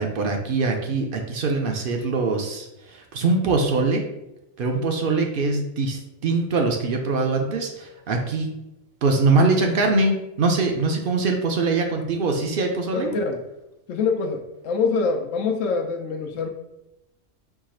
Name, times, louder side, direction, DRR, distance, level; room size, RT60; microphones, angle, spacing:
voice 1, 0.0-4.1 4.6-8.5 9.0-13.1, right 3 dB, 55° right, 3 dB, 0.6 m, -23 dB
voice 2, 12.9-13.4 13.9-16.5, left 4 dB, 90° left, 4 dB, 1.0 m, -25 dB
4.6 x 2.4 x 4.2 m, 0.91 s
omnidirectional pair, 1.3 m